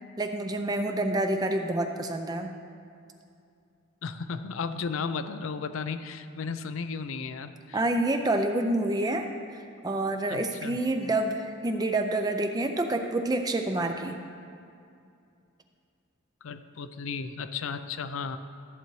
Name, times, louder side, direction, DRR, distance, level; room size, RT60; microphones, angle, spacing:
voice 1, 0.2-2.5 7.7-9.3 9.5-14.2, right 2 dB, 20° right, 5 dB, 0.4 m, -28 dB
voice 2, 4.0-7.8 10.3-10.8 16.4-18.4, left 5 dB, 75° left, 11 dB, 0.4 m, -34 dB
14.0 x 7.9 x 3.1 m, 2.4 s
head